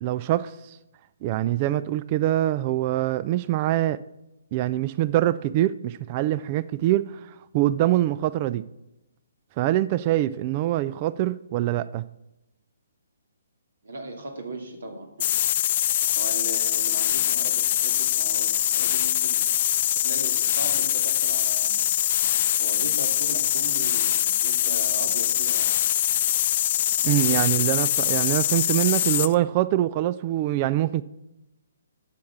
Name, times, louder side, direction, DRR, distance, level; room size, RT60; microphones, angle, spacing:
voice 1, 0.0-0.8 1.2-4.0 4.5-8.6 9.6-12.0 27.0-31.0, right 14 dB, 35° right, 0.3 m, -24 dB
voice 2, 13.8-15.3 15.8-19.5 19.9-21.8 22.6-25.7 27.1-27.4, right 2 dB, 65° right, 2.5 m, -38 dB
sound 1, 15.2-29.3, left 12 dB, 45° left, 0.4 m, -23 dB
11.5 x 7.4 x 6.0 m
figure-of-eight pair, 135°, 0 cm